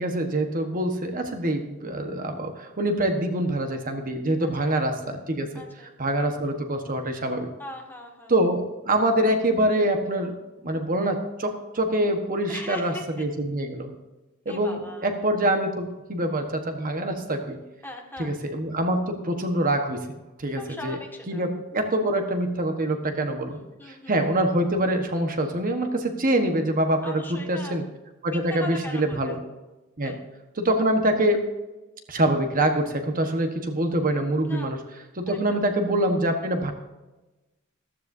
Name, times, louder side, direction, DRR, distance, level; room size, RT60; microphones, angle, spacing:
voice 1, 0.0-5.6 6.0-7.5 8.3-10.4 10.6-13.9 14.4-17.6 18.2-20.1 20.4-21.0 21.3-23.6 23.8-27.8 28.2-29.4 30.0-30.2 30.5-31.4 32.1-34.8 35.2-36.7, right 1 dB, 40° right, 5 dB, 1.3 m, -25 dB
voice 2, 4.4-4.7 5.5-5.9 7.6-8.3 12.5-13.3 14.5-15.1 17.8-18.3 20.6-21.5 23.8-24.2 27.0-27.8 28.3-29.4 30.0-30.2 34.4-34.7 35.3-35.7, left 1 dB, 10° left, 1 dB, 1.8 m, -40 dB
14.5 x 13.5 x 2.7 m, 1.1 s
head